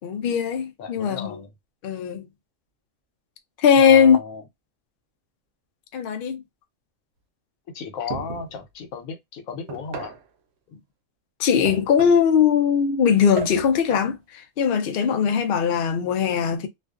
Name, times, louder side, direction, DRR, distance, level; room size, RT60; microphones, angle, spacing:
voice 1, 0.0-1.4 1.8-2.3 3.6-4.2 5.9-6.4 11.4-16.7, left 7 dB, 60° left, 0.6 m, -20 dB
voice 2, 0.8-1.5 3.8-4.5 7.7-10.2, left 5 dB, 85° left, 1.1 m, -35 dB
sound 1, 8.1-8.6 9.7-10.3 11.6-12.3 13.4-14.1, right 6 dB, 65° right, 0.8 m, -35 dB
2.4 x 2.4 x 2.3 m
omnidirectional pair, 1.3 m